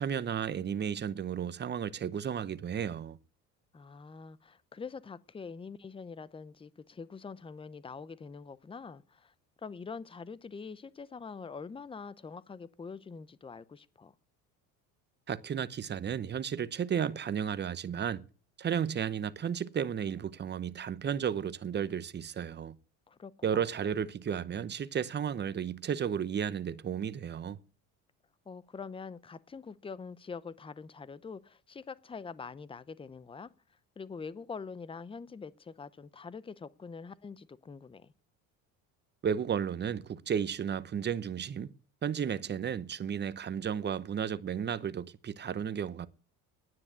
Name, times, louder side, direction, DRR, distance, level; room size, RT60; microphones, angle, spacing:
voice 1, 0.0-3.2 15.3-18.2 18.6-22.8 23.4-27.6 39.2-41.7 42.0-46.1, right 8 dB, 30° right, 0.8 m, -33 dB
voice 2, 3.7-9.3 9.6-14.1 23.1-23.5 28.5-33.5 34.0-38.1, left 5 dB, 15° left, 0.7 m, -44 dB
9.8 x 9.6 x 8.1 m
supercardioid pair, 105°, 37 cm